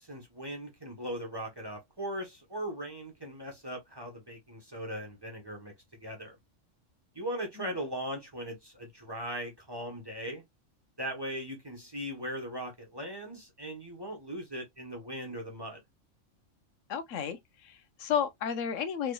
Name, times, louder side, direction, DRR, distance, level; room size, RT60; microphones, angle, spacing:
voice 1, 0.0-5.7 6.0-6.4 7.1-10.4 11.0-15.8, equal, 20° right, 0.9 m, -39 dB
voice 2, 16.9-19.1, left 8 dB, 85° left, 1.0 m, -33 dB
3.3 x 3.2 x 2.2 m
omnidirectional pair, 1.3 m